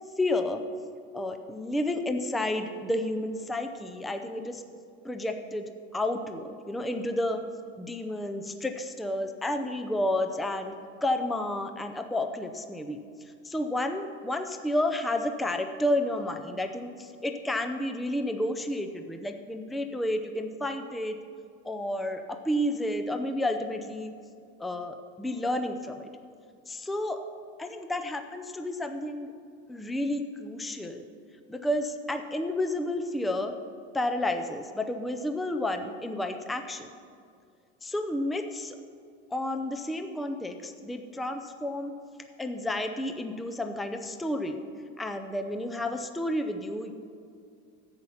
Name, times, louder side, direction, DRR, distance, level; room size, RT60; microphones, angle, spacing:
voice 1, 0.2-0.6 1.1-4.6 5.0-7.4 7.8-10.8 11.0-13.0 13.4-21.2 21.6-24.1 24.6-26.1 26.7-27.2 27.6-29.3 29.7-31.1 31.5-33.5 33.9-36.9 37.8-38.8 39.3-41.9 42.4-44.6 45.0-46.9, left 1 dB, ahead, 6 dB, 0.5 m, -31 dB
10.5 x 8.3 x 5.7 m, 2.4 s
supercardioid pair, 115°, 34 cm